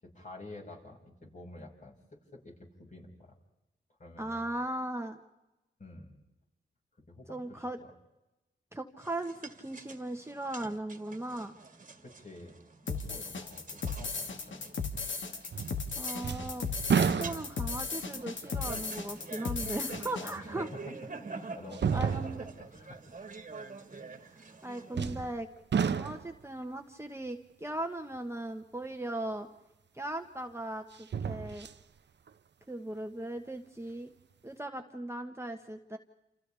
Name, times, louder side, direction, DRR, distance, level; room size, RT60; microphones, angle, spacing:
voice 1, 0.0-3.3 4.0-4.5 5.8-6.2 7.1-7.9 12.0-12.6 12.8-14.7 20.2-20.9 21.3-23.0, left 2 dB, 40° left, -1 dB, 5.8 m, -49 dB
voice 2, 4.2-5.2 7.3-7.8 8.7-11.5 16.0-16.7 17.0-20.7 21.9-22.5 24.6-25.5 25.8-29.5 29.9-31.7 32.7-34.1 34.4-36.0, right 1 dB, 15° right, 4 dB, 1.3 m, -38 dB
sound 1, 9.0-25.1, right 4 dB, 40° right, 1.9 m, -47 dB
sound 2, 12.9-20.3, left 4 dB, 70° left, 2.0 m, -36 dB
sound 3, 15.5-15.9 16.2-17.8 18.4-18.5 20.4-20.5 21.7-22.6 24.9-25.4 25.7-26.4 29.4-29.5 30.9-31.8 32.3-32.4, right 6 dB, 60° right, 0.9 m, -31 dB
29.0 x 29.0 x 3.5 m, 0.97 s
wide cardioid pair, 95°, 20 cm